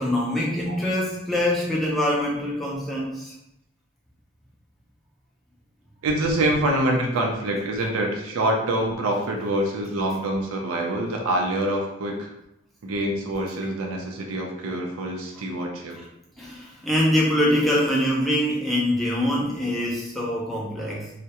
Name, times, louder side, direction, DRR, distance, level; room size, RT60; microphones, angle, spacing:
voice 1, 0.0-3.3 16.0-16.1 16.4-21.1, left 1 dB, ahead, -4 dB, 0.4 m, -24 dB
voice 2, 6.0-12.3 12.8-16.0 19.2-19.4, right 1 dB, 90° right, 1 dB, 0.4 m, -25 dB
2.3 x 2.1 x 2.8 m, 0.82 s
head